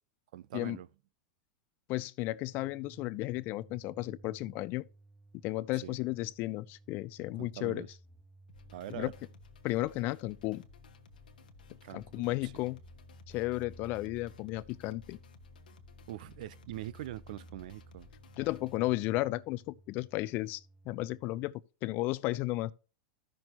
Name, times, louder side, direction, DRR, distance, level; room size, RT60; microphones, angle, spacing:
voice 1, 0.3-0.9 5.8-6.0 7.4-7.9 8.7-9.1 11.8-12.6 16.1-18.1, right 14 dB, 70° right, 0.5 m, -43 dB
voice 2, 1.9-4.8 5.4-7.9 8.9-9.1 9.6-10.6 11.9-12.8 13.3-15.2 18.4-22.7, left 18 dB, 45° left, 0.4 m, -34 dB
sound 1, 2.3-21.5, right 2 dB, 15° right, 0.7 m, -57 dB
sound 2, 8.5-18.8, left 6 dB, 90° left, 1.2 m, -57 dB
14.5 x 6.2 x 2.9 m
hypercardioid pair, 115°, 5 cm